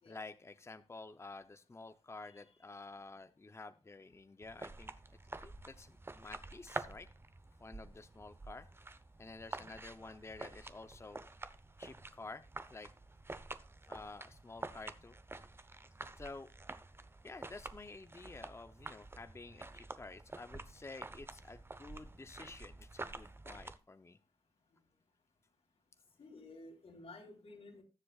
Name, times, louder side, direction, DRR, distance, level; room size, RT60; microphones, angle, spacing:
voice 1, 0.1-4.9 5.4-7.1 7.6-8.7 9.2-11.3 11.8-12.4 12.7-12.9 13.9-15.2 16.2-16.5 17.2-24.2, left 3 dB, 25° left, 10 dB, 0.6 m, -51 dB
sound 1, 4.4-23.8, right 2 dB, 25° right, 0.8 m, -49 dB
voice 2, 26.2-27.8, left 2 dB, 85° left, 0 dB, 3.9 m, -53 dB
19.5 x 7.5 x 2.4 m, 0.30 s
wide cardioid pair, 130°, 10 cm